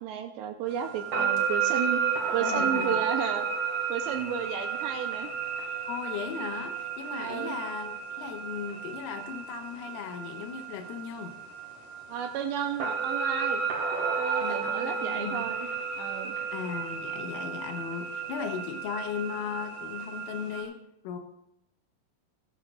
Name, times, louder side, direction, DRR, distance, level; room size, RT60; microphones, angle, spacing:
voice 1, 0.0-2.0 2.3-3.5 3.9-5.3 7.2-7.5 12.1-13.6 14.2-15.7 16.0-16.4, right 9 dB, 80° right, 5 dB, 2.6 m, -33 dB
sound 1, 0.7-20.6, right 6 dB, 55° right, 4.1 m, -32 dB
voice 2, 2.2-3.0 5.9-11.4 14.4-15.5 16.5-20.8 21.0-21.2, left 7 dB, 80° left, 6 dB, 3.8 m, -37 dB
16.0 x 15.5 x 2.5 m, 0.83 s
omnidirectional pair, 5.8 m